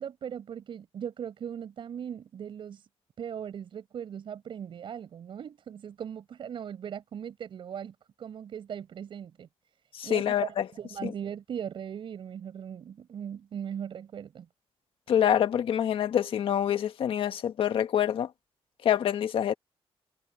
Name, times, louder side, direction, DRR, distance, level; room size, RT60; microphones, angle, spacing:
voice 1, 0.0-2.8 3.2-9.5 10.0-14.5, right 8 dB, 55° right, 7.2 m, -39 dB
voice 2, 9.9-10.6 11.0-11.1 15.1-18.3 18.8-19.5, left 10 dB, 60° left, 1.6 m, -26 dB
cardioid pair, 155°, 10 cm